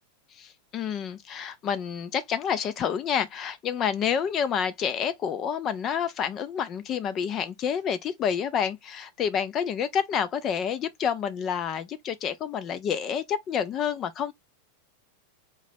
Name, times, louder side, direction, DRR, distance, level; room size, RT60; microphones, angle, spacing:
voice 1, 0.3-14.3, left 8 dB, 30° left, 0.5 m, -29 dB
3.9 x 3.0 x 2.5 m
figure-of-eight pair, 90°, 0 cm